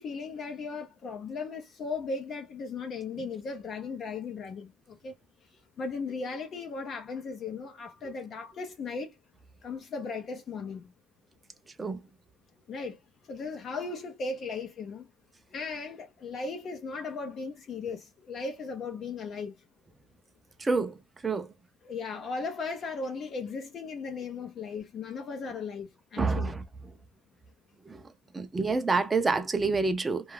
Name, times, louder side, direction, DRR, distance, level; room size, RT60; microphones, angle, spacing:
voice 1, 0.0-5.1 5.8-9.1 9.6-10.9 12.7-13.0 13.3-15.1 15.5-19.5 21.8-26.5, left 4 dB, 45° left, 0.5 m, -37 dB
voice 2, 20.6-21.5 26.2-26.6 27.9-28.0 28.3-30.3, right 3 dB, 15° right, 0.5 m, -28 dB
2.4 x 2.3 x 3.1 m
cardioid pair, 120°, 0 cm